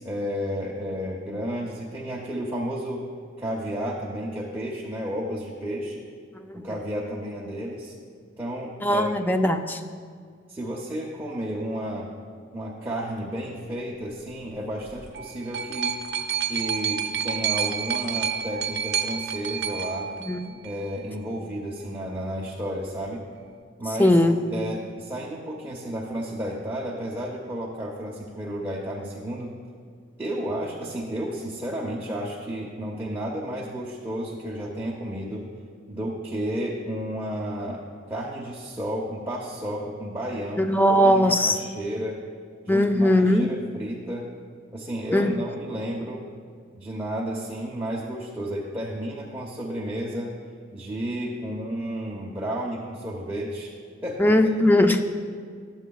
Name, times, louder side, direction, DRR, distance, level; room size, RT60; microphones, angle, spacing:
voice 1, 0.0-3.0 3.4-6.1 6.5-7.9 8.4-9.1 10.5-12.1 12.5-16.0 16.4-20.1 20.6-23.2 23.8-24.2 24.5-29.5 30.2-35.5 35.9-42.2 42.6-44.3 44.7-46.3 46.7-50.3 50.7-53.7 54.0-54.3, equal, 10° right, -4 dB, 0.7 m, -32 dB
voice 2, 8.8-9.8 20.2-20.5 24.0-24.4 40.6-41.6 42.7-43.5 45.1-45.3 54.2-55.0, left 1 dB, 10° left, 7 dB, 0.4 m, -19 dB
sound 1, 14.9-20.9 21.8-21.9, right 7 dB, 60° right, 0.6 m, -29 dB
13.0 x 8.0 x 2.3 m, 2.1 s
head